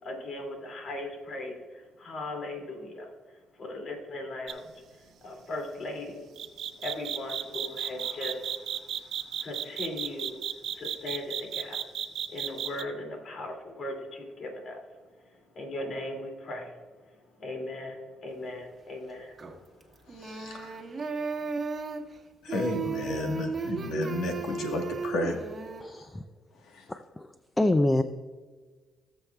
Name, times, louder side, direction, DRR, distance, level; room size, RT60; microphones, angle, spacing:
voice 1, 0.0-3.1 3.6-6.3 6.8-11.8 12.3-14.8 15.5-16.7 17.4-19.4 20.0-20.3, left 1 dB, 55° left, 2 dB, 2.5 m, -38 dB
sound 1, 4.5-4.7 6.4-12.8, right 10 dB, 75° right, 0.6 m, -33 dB
sound 2, 19.4-19.8 20.1-22.2 22.5-25.8, right 4 dB, 35° right, 1.3 m, -34 dB
voice 2, 20.2-20.8 22.4-25.4, left 2 dB, 80° left, 4 dB, 1.3 m, -32 dB
voice 3, 25.8-26.2 26.9-28.0, left 1 dB, 15° left, 9 dB, 0.4 m, -26 dB
17.5 x 7.2 x 2.3 m, 1.4 s
cardioid pair, 90°, 0 cm